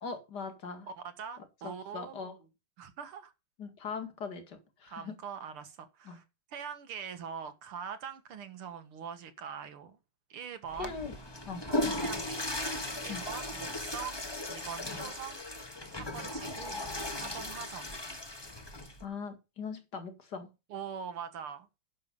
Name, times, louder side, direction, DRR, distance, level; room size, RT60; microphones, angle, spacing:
voice 1, 0.0-0.9 1.6-2.4 3.6-5.2 6.1-6.2 10.7-11.1 11.5-11.6 13.1-13.2 19.0-20.5, left 5 dB, 50° left, 2.6 m, -40 dB
voice 2, 0.9-2.3 2.8-3.3 4.9-6.2 6.5-10.0 10.3-11.0 11.7-12.4 13.0-15.5 15.9-16.8 17.1-18.0 20.7-21.7, right 7 dB, 85° right, 2.5 m, -43 dB
Water / Toilet flush, 10.7-19.0, left 1 dB, 15° left, 1.1 m, -37 dB
10.5 x 6.8 x 5.6 m
omnidirectional pair, 2.3 m